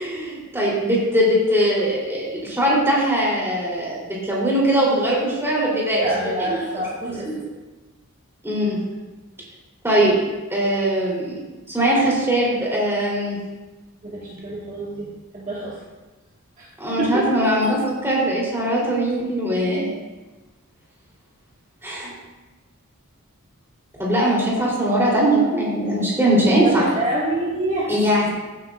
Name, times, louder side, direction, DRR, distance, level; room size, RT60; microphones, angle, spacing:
voice 1, 0.0-6.1 6.4-6.6 7.0-7.1 8.4-8.8 9.8-10.2 10.5-11.4 11.7-13.4 16.8-19.9 21.8-22.1 24.0-26.9 27.9-28.3, right 1 dB, 10° right, -5 dB, 3.6 m, -21 dB
voice 2, 5.9-7.5 14.0-15.8 16.6-16.7 17.0-17.3 26.2-27.9, right 1 dB, 35° right, -7 dB, 1.8 m, -27 dB
15.5 x 9.2 x 2.5 m, 1.2 s
head